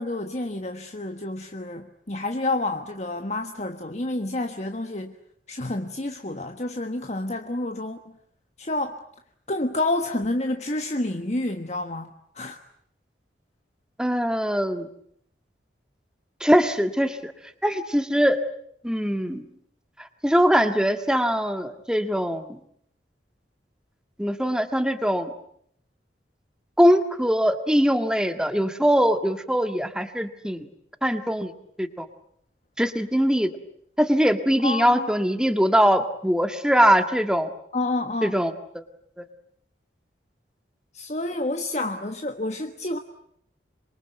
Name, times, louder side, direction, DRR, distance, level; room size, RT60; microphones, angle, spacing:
voice 1, 0.0-5.1 5.5-8.0 8.6-9.0 9.5-12.1 12.3-12.6 34.6-35.1 37.7-38.3 40.9-43.0, left 2 dB, 40° left, 6 dB, 1.3 m, -29 dB
voice 2, 14.0-14.9 16.4-17.3 17.6-18.4 18.8-19.5 20.0-22.6 24.2-25.3 26.8-30.7 31.0-31.5 31.8-32.1 32.8-33.5 34.0-37.5 38.2-38.8, equal, 5° right, 7 dB, 1.8 m, -22 dB
27.0 x 23.5 x 9.2 m, 0.69 s
head